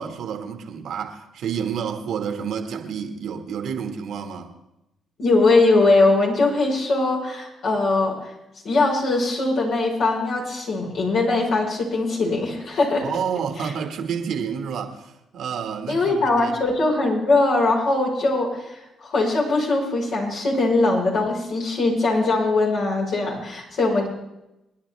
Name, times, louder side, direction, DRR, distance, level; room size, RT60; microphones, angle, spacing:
voice 1, 0.0-4.5 13.0-16.6, right 7 dB, 70° right, 1.7 m, -29 dB
voice 2, 5.2-8.1 8.6-13.1 13.6-13.7 15.9-24.1, left 2 dB, 70° left, 4.7 m, -21 dB
27.5 x 10.0 x 3.4 m
supercardioid pair, 60°, 0 cm